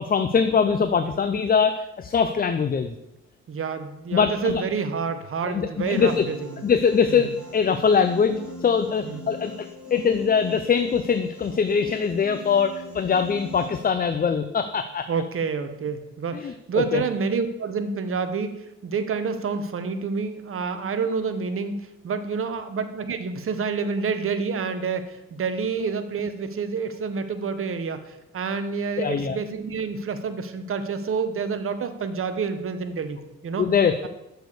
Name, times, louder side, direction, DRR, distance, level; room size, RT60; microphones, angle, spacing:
voice 1, 0.0-2.9 4.1-4.6 5.4-6.3 6.6-15.1 16.3-17.0 29.0-29.4 33.6-34.1, left 6 dB, 30° left, 9 dB, 0.5 m, -22 dB
voice 2, 3.5-6.4 7.1-7.2 9.0-9.2 15.1-21.7 22.0-28.0 28.3-33.7, right 5 dB, 45° right, 9 dB, 1.0 m, -28 dB
Piano, 5.9-13.9, left 1 dB, 5° right, 3.7 m, -41 dB
6.8 x 6.2 x 6.7 m, 0.92 s
cardioid pair, 90°, 30 cm